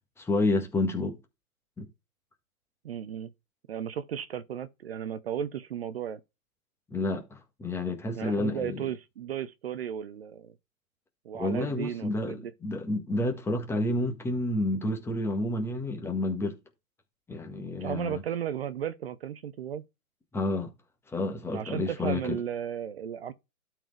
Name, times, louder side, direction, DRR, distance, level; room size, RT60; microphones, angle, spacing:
voice 1, 0.2-1.2 1.8-1.9 6.9-8.8 11.3-16.6 17.3-18.2 20.3-20.7 21.1-22.4, left 2 dB, 5° left, 1.4 m, -30 dB
voice 2, 2.8-3.3 3.7-6.2 8.2-10.5 11.2-12.5 17.8-19.8 21.5-23.3, right 9 dB, 45° right, 0.8 m, -35 dB
12.0 x 4.6 x 3.2 m
hypercardioid pair, 135°, 44 cm